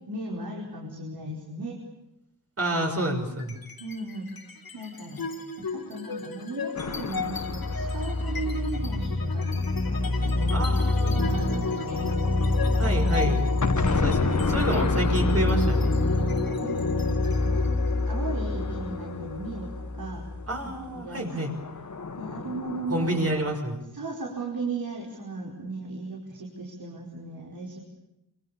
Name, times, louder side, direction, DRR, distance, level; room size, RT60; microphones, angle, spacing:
voice 1, 0.1-1.8 3.8-4.3 4.7-5.3 5.6-10.7 11.0-12.0 14.7-14.8 16.4-17.7 18.1-20.3 20.6-21.5 22.2-23.1 23.9-27.8, right 2 dB, 60° right, -1 dB, 5.2 m, -36 dB
voice 2, 2.6-3.6 10.5-11.6 12.8-13.4 13.9-15.9 20.5-21.5 22.9-23.9, right 1 dB, 35° right, 3 dB, 6.0 m, -29 dB
sound 1, 3.4-3.9 4.3-20.9, left 2 dB, 65° left, 3.4 m, -27 dB
sound 2, 6.8-9.6 13.6-19.9 21.1-23.6, left 4 dB, 45° left, 1.8 m, -34 dB
27.0 x 26.0 x 7.1 m, 0.89 s
wide cardioid pair, 160°, 39 cm